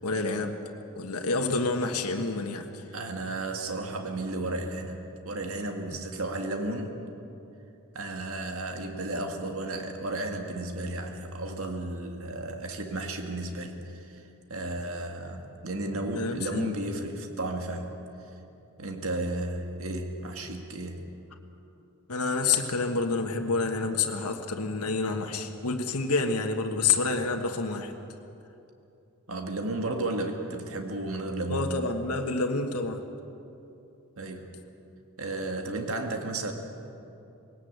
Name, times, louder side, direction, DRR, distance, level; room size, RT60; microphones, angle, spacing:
voice 1, 0.0-0.6 0.9-2.7 16.1-16.7 22.1-27.9 31.5-33.0, left 3 dB, 85° left, 4 dB, 1.4 m, -28 dB
voice 2, 2.9-7.0 7.9-14.2 14.5-17.9 18.8-21.1 29.3-31.8 34.2-34.5 35.2-36.5, right 2 dB, 65° right, 4 dB, 1.9 m, -33 dB
20.0 x 18.0 x 8.1 m, 2.8 s
head